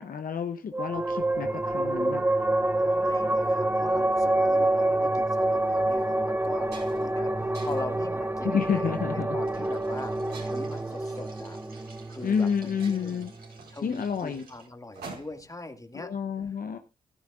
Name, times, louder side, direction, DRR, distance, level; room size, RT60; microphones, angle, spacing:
voice 1, 0.0-2.2 8.4-9.4 12.2-13.3 13.8-14.4 15.9-16.8, left 7 dB, 60° left, 7 dB, 0.8 m, -29 dB
sound 1, 0.7-13.6, right 1 dB, 10° right, 0.7 m, -27 dB
voice 2, 2.8-11.6 12.1-13.2 13.7-16.1, left 2 dB, 20° left, 6 dB, 2.1 m, -41 dB
sound 2, 5.3-5.4 6.0-6.1 6.4-7.2 7.5-8.0 8.7-9.0 10.3-10.9 12.0-12.1 12.4-12.5 12.8-15.6, right 3 dB, 80° right, 5.1 m, -47 dB
sound 3, 9.4-14.7, right 4 dB, 65° right, 4.5 m, -54 dB
15.0 x 13.0 x 2.5 m, 0.27 s
supercardioid pair, 40°, 17 cm